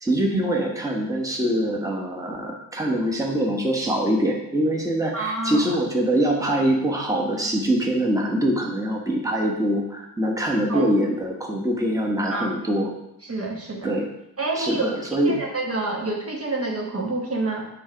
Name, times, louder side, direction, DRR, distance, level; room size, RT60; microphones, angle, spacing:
voice 1, 0.0-12.9 13.8-14.1 14.6-15.4, right 1 dB, 10° right, -1 dB, 1.2 m, -23 dB
voice 2, 5.1-5.7 10.7-10.9 12.3-12.5 13.2-13.9 14.4-15.0 15.3-17.7, right 2 dB, 40° right, 0 dB, 1.1 m, -28 dB
9.5 x 3.4 x 5.1 m, 0.85 s
wide cardioid pair, 120°, 37 cm